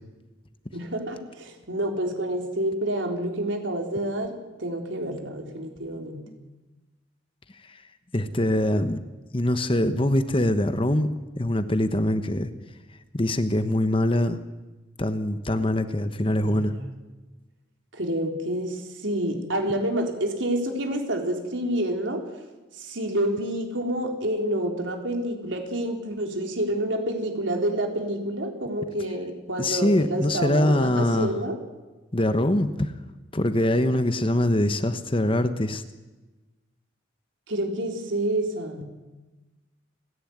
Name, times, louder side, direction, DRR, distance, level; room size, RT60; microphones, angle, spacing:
voice 1, 0.7-4.3 4.6-6.2 16.5-16.9 17.9-22.2 22.7-31.6 37.5-38.9, right 1 dB, 75° right, 2 dB, 4.0 m, -28 dB
voice 2, 8.1-9.0 9.3-11.1 11.4-12.5 13.1-14.4 15.0-16.7 29.6-31.3 32.1-32.9 33.3-35.8, left 1 dB, 30° left, 10 dB, 1.1 m, -23 dB
30.0 x 11.5 x 9.5 m, 1.2 s
head